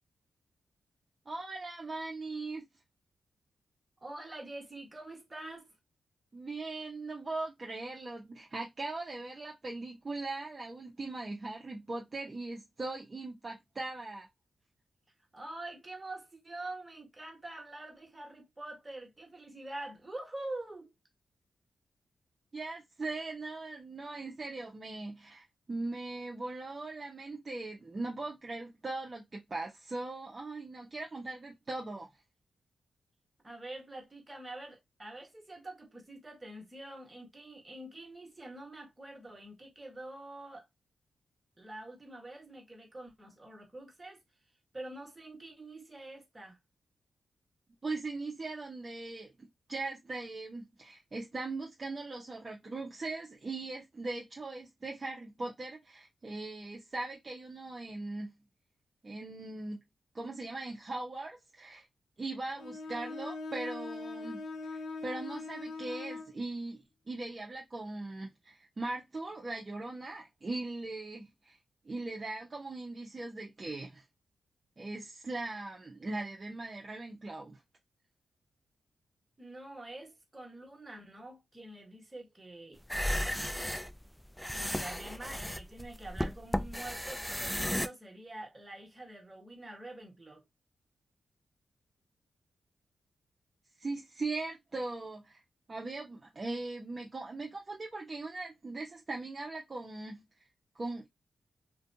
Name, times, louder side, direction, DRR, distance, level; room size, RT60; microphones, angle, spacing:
voice 1, 1.3-2.7 6.3-14.3 22.5-32.1 47.8-49.3 49.7-58.3 59.0-59.8 60.1-61.8 62.2-71.6 71.8-74.0 74.8-77.6 93.8-95.4 95.7-100.4 100.7-101.1, right 2 dB, 40° right, 0.7 m, -40 dB
voice 2, 4.0-5.7 15.3-20.9 33.4-40.7 41.6-44.2 44.7-46.6 79.4-83.4 84.5-90.4, right 2 dB, 25° right, 1.4 m, -46 dB
Bowed string instrument, 62.6-66.4, left 3 dB, 85° left, 0.4 m, -41 dB
sound 1, 82.8-87.9, equal, 5° left, 0.3 m, -34 dB
2.5 x 2.2 x 2.7 m
cardioid pair, 60°, 0 cm